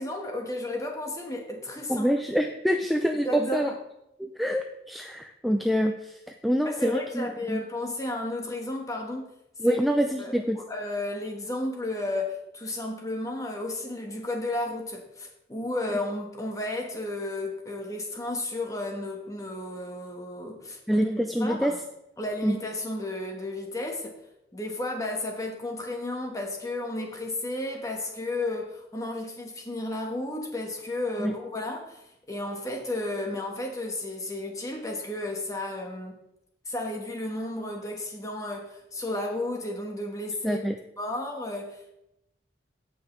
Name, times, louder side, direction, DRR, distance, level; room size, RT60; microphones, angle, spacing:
voice 1, 0.0-2.0 3.2-3.8 6.6-9.3 9.6-9.8 10.2-21.0 21.4-21.8 22.2-24.1 24.5-36.2 36.7-40.6 41.0-41.9, left 1 dB, 20° left, 2 dB, 1.3 m, -33 dB
voice 2, 1.9-3.7 4.2-7.6 9.6-10.6 20.9-21.7 22.4-22.6 31.2-31.3 40.4-40.8, equal, ahead, 4 dB, 0.4 m, -26 dB
16.0 x 5.6 x 3.2 m, 0.85 s
head